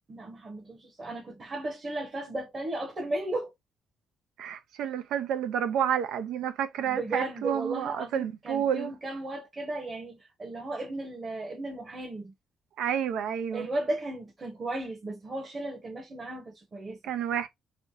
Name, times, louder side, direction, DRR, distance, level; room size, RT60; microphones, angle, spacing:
voice 1, 0.1-3.5 6.8-12.3 13.5-17.0, right 2 dB, 35° right, 1.1 m, -35 dB
voice 2, 4.4-8.9 12.8-13.7 17.0-17.5, right 9 dB, 85° right, 0.5 m, -30 dB
3.3 x 2.7 x 2.7 m
cardioid pair, 90°, 0 cm